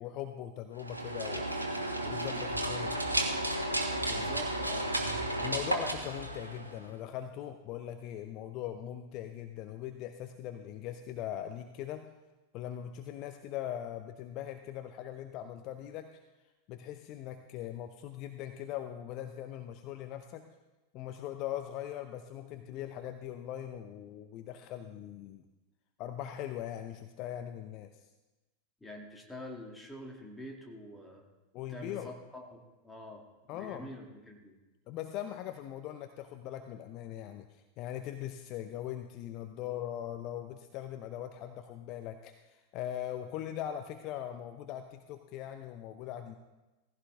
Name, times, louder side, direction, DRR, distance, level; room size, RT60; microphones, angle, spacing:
voice 1, 0.0-1.5 2.0-3.0 5.4-12.1 12.5-16.2 16.7-20.5 20.9-25.4 26.0-27.9 31.5-32.1 33.5-33.9 34.9-46.3, left 11 dB, 40° left, 7 dB, 0.7 m, -40 dB
sound 1, 0.8-6.9, right 1 dB, 85° right, 1.4 m, -33 dB
voice 2, 4.1-4.9 28.8-31.2 31.7-34.6, left 1 dB, 5° left, 1 dB, 2.3 m, -46 dB
17.0 x 15.5 x 3.5 m, 1.1 s
figure-of-eight pair, 90°, 0 cm